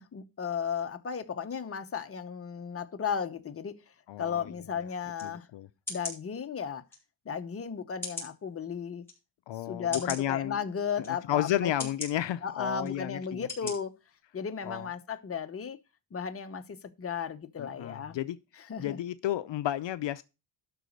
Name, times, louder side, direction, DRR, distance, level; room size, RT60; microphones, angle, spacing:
voice 1, 0.0-3.8 4.2-5.5 5.9-6.8 7.3-9.0 9.7-11.9 12.4-13.9 14.3-15.8 16.1-18.2 18.6-19.0, left 6 dB, 30° left, 0.8 m, -35 dB
voice 2, 4.1-4.5 5.2-5.7 9.5-10.6 11.1-13.7 14.6-14.9 17.6-18.4 18.8-20.2, left 13 dB, 65° left, 0.6 m, -32 dB
sound 1, 5.1-5.3 5.9-6.2 6.9-7.0 8.0-8.3 9.0-9.1 9.9-10.2 11.0-11.1 11.8-12.1 12.8-12.9 13.5-13.7 14.2-14.3, left 3 dB, 5° left, 4.7 m, -38 dB
12.0 x 4.1 x 6.4 m
wide cardioid pair, 140°, 47 cm